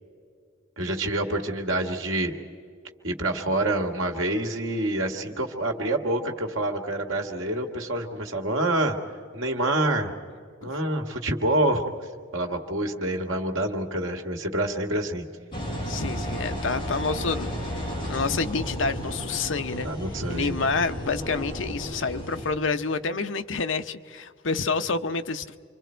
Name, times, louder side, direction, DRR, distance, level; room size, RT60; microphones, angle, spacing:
voice 1, 0.8-2.3 3.0-9.0 9.3-10.1 10.6-11.9 12.3-15.2 19.8-20.6, right 1 dB, 80° right, 3 dB, 2.0 m, -27 dB
Engine, 15.5-22.5, equal, 25° left, 5.5 m, -33 dB
voice 2, 15.9-19.9 20.3-25.6, left 4 dB, 70° left, 9 dB, 0.8 m, -28 dB
28.5 x 25.0 x 4.5 m, 2.2 s
head